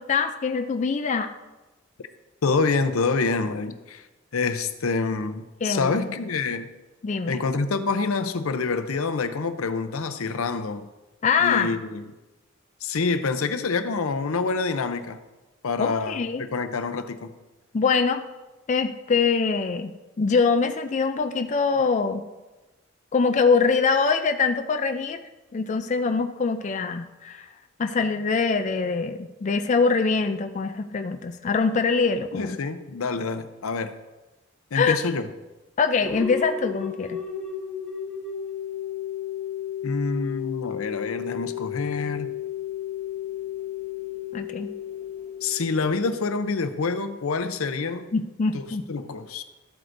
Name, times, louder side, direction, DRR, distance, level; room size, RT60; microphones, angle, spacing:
voice 1, 0.0-1.4 5.6-6.1 7.0-7.4 11.2-11.8 15.8-16.4 17.7-18.2 18.7-22.2 23.1-25.2 25.5-27.5 27.8-32.6 34.7-35.0 35.8-37.2 44.3-44.7 48.1-48.8, left 5 dB, 35° left, 7 dB, 0.4 m, -24 dB
voice 2, 2.4-4.0 4.3-6.7 7.3-10.9 11.4-12.0 12.8-15.2 15.6-17.3 32.3-33.9 34.7-35.2 39.8-42.3 45.4-48.1 48.5-48.6 48.9-49.4, left 4 dB, 90° left, 10 dB, 0.6 m, -27 dB
sound 1, 36.0-46.7, left 9 dB, 5° left, 1.4 m, -33 dB
13.0 x 7.8 x 2.6 m, 1.1 s
head